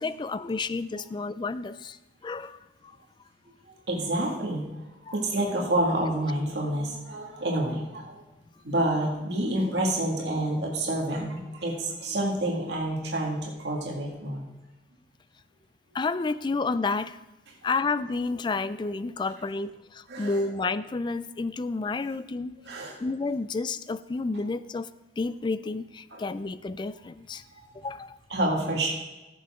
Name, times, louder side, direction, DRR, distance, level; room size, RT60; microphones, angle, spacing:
voice 1, 0.0-2.0 2.2-2.6 5.0-5.2 15.9-17.2 17.6-22.6 23.0-24.9 25.2-27.4 27.7-28.2, left 3 dB, 25° left, 15 dB, 0.3 m, -30 dB
voice 2, 3.9-4.7 5.1-8.2 8.6-14.4 20.1-20.4 22.7-22.9 26.1-26.2 27.6-27.7 28.3-28.9, right 1 dB, 75° right, -2 dB, 2.0 m, -28 dB
15.5 x 6.9 x 3.6 m, 1.1 s
head